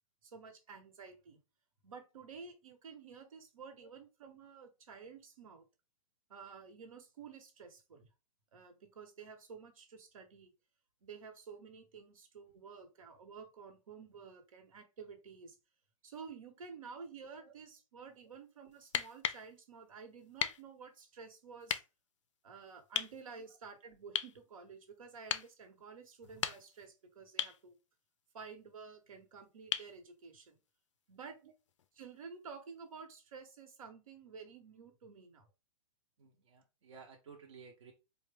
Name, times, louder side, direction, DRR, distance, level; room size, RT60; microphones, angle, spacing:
voice 1, 0.2-1.4 1.8-5.6 6.3-8.0 8.5-10.5 11.0-15.6 16.0-21.8 22.4-27.8 28.3-30.6 31.1-31.4 32.0-35.5, right 5 dB, 80° right, 7 dB, 1.1 m, -51 dB
sound 1, 18.8-19.5 20.4-20.6 21.7-21.8 23.0-23.2 24.2-24.4 25.3-25.5 26.2-26.9 27.4-27.6 29.7-30.0 31.8-31.9, left 9 dB, 60° left, 0.4 m, -36 dB
voice 2, 36.2-37.9, right 5 dB, 60° right, 0 dB, 0.7 m, -55 dB
4.1 x 2.1 x 3.3 m, 0.28 s
hypercardioid pair, 180°, 17 cm